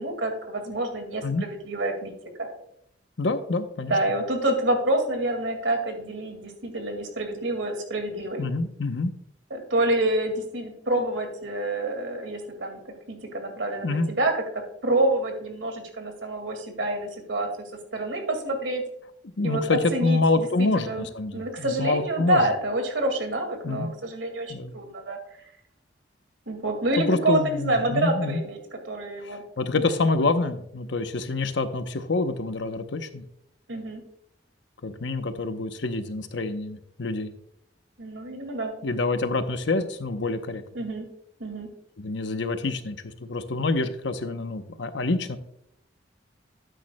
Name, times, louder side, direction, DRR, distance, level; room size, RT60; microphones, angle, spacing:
voice 1, 0.0-2.1 2.4-2.5 3.9-8.5 9.5-14.3 14.8-17.5 17.9-18.8 19.4-21.1 21.3-25.2 26.5-29.4 29.7-29.8 33.7-34.0 38.0-38.7 40.7-41.0 41.4-41.7, right 1 dB, 75° right, 5 dB, 2.1 m, -27 dB
voice 2, 3.2-3.9 8.4-9.1 13.8-14.1 19.4-22.4 23.6-23.9 24.5-24.7 27.0-28.4 29.2-33.2 34.8-37.3 38.8-40.6 42.0-45.4, left 3 dB, 75° left, 9 dB, 0.8 m, -27 dB
12.5 x 9.1 x 2.2 m, 0.74 s
head